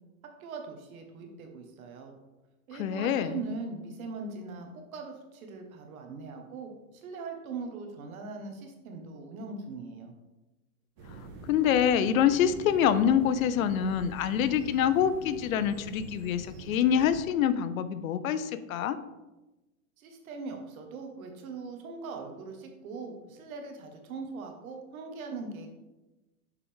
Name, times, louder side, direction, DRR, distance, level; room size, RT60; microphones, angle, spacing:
voice 1, 0.4-2.1 2.7-10.1 20.0-25.7, right 4 dB, 65° right, 4 dB, 1.4 m, -41 dB
voice 2, 2.8-3.4 11.5-19.0, left 9 dB, 65° left, 13 dB, 0.6 m, -26 dB
sound 1, 11.0-17.2, right 2 dB, 35° right, 1.7 m, -45 dB
6.6 x 4.7 x 3.6 m, 1.1 s
supercardioid pair, 155°, 44 cm